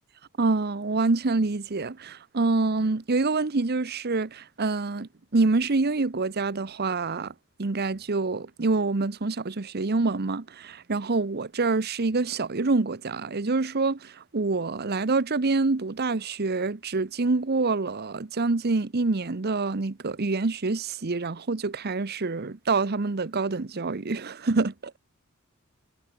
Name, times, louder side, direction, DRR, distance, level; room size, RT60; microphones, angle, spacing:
voice 1, 0.4-7.3 7.6-25.0, right 3 dB, 45° right, 0.8 m, -26 dB
head